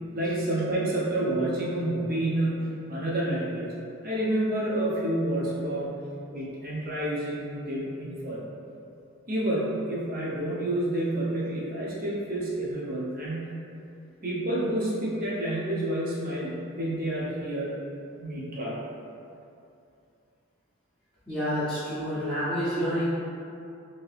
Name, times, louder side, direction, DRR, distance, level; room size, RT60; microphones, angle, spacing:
voice 1, 0.1-3.7 4.0-5.9 6.3-8.5 9.3-13.5 14.2-17.7 18.2-18.8, right 1 dB, 40° right, -6 dB, 0.6 m, -29 dB
voice 2, 21.3-23.1, equal, 5° left, -17 dB, 0.6 m, -28 dB
2.8 x 2.7 x 3.2 m, 2.6 s
head